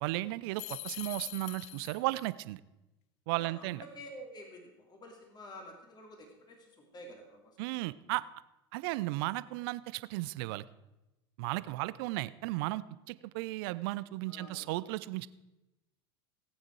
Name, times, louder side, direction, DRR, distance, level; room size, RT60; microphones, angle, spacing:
voice 1, 0.0-2.6 3.3-3.8 7.6-8.2 8.7-10.7 11.4-15.3, right 19 dB, 60° right, 17 dB, 0.6 m, -35 dB
sound 1, 0.6-2.3, left 18 dB, 50° left, 0.5 m, -43 dB
voice 2, 3.4-7.6 14.3-14.8, equal, 30° left, 2 dB, 2.9 m, -50 dB
18.0 x 8.8 x 4.7 m, 0.98 s
hypercardioid pair, 85°, 14 cm